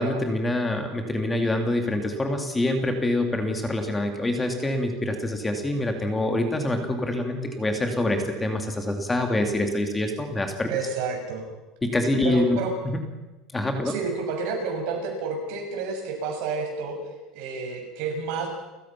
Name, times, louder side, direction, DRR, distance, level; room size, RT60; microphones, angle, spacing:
voice 1, 0.0-10.7 11.8-12.6 13.5-13.9, left 1 dB, 10° left, 5 dB, 2.3 m, -25 dB
voice 2, 10.7-11.4 12.2-12.7 13.8-17.0 17.3-18.5, right 4 dB, 65° right, 2 dB, 6.9 m, -30 dB
30.0 x 15.5 x 5.8 m, 1.1 s
supercardioid pair, 145°, 0 cm